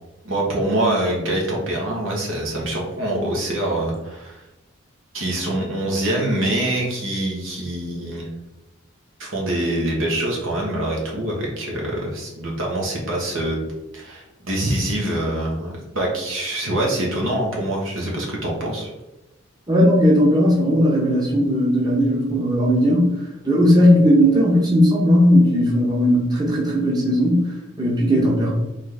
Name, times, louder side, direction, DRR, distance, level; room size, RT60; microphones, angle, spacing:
voice 1, 0.2-4.4 5.1-8.3 9.2-13.7 13.9-18.9, right 1 dB, 75° right, -2 dB, 1.4 m, -24 dB
voice 2, 19.7-28.5, equal, 20° right, -4 dB, 0.9 m, -17 dB
3.9 x 3.4 x 3.9 m, 0.97 s
head